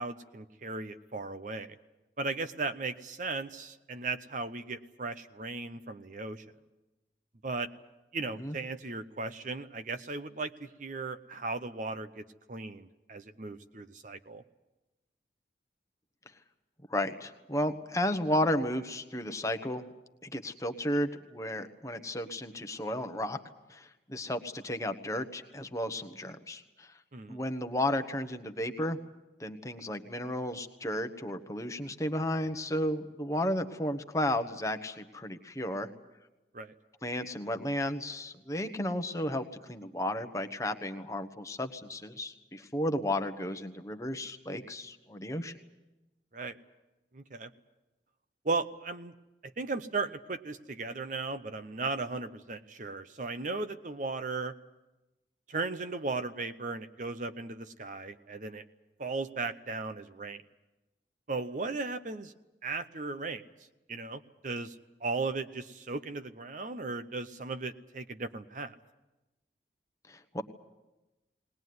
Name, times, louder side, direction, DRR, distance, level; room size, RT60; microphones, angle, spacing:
voice 1, 0.0-1.8 2.2-6.4 7.4-7.7 8.1-14.4 27.1-27.4 36.5-36.7 46.3-46.6 47.1-47.5 48.4-49.1 49.4-54.5 55.5-58.6 59.0-60.4 61.3-62.3 62.6-63.4 63.9-64.7 65.0-68.7, right 3 dB, 45° right, 11 dB, 0.8 m, -36 dB
voice 2, 16.9-19.9 20.2-23.4 23.7-26.9 27.3-29.0 29.4-35.9 37.0-45.5 70.1-70.4, left 1 dB, 20° left, 8 dB, 1.1 m, -33 dB
20.0 x 20.0 x 9.5 m, 1.0 s
head